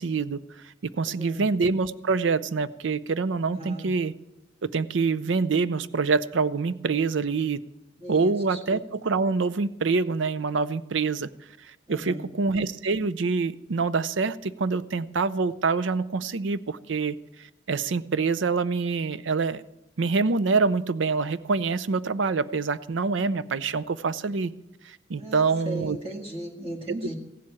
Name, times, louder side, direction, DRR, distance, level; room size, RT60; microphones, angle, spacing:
voice 1, 0.0-4.1 4.6-7.6 8.1-11.3 11.7-19.6 20.0-24.5 24.8-26.0, right 4 dB, 80° right, 16 dB, 0.6 m, -26 dB
voice 2, 1.1-1.5 3.5-3.9 8.0-8.6 11.9-12.3 25.1-27.2, right 1 dB, 30° right, 0 dB, 1.9 m, -37 dB
15.5 x 7.6 x 8.7 m, 0.91 s
head